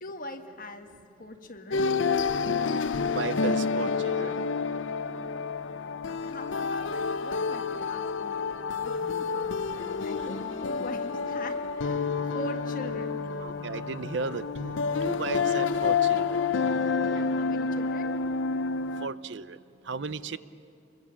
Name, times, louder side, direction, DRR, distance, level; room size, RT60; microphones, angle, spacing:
voice 1, 0.0-0.9 1.2-1.9 6.1-13.2 17.1-18.2 20.3-20.4, left 1 dB, 45° left, 6 dB, 1.5 m, -42 dB
sound 1, 1.7-19.1, left 5 dB, 90° left, 0.6 m, -29 dB
voice 2, 2.8-4.4 9.6-10.3 12.1-12.2 13.4-16.5 19.0-20.4, right 4 dB, 70° right, 16 dB, 0.6 m, -36 dB
Wind instrument woodwind instrument, 8.6-16.0, left 1 dB, 15° left, 1.3 m, -47 dB
26.5 x 22.0 x 7.4 m, 2.7 s
head